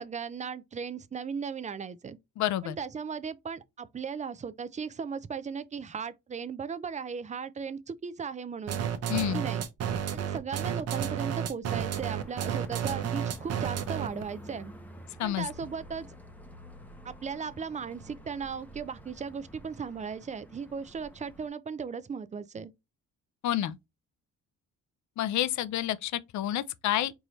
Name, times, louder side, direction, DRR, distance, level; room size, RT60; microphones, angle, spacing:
voice 1, 0.0-2.2 2.6-8.8 9.2-9.6 10.1-14.7 15.2-16.1 17.0-22.7, right 6 dB, 25° right, 0.5 m, -37 dB
voice 2, 2.4-2.8 9.1-9.4 15.2-15.5 23.4-23.8 25.2-27.1, left 12 dB, 70° left, 0.5 m, -29 dB
sound 1, 8.7-14.2, right 8 dB, 55° right, 0.8 m, -31 dB
sound 2, 11.9-21.5, equal, 5° left, 0.8 m, -49 dB
4.7 x 2.6 x 3.1 m
cardioid pair, 90°, 30 cm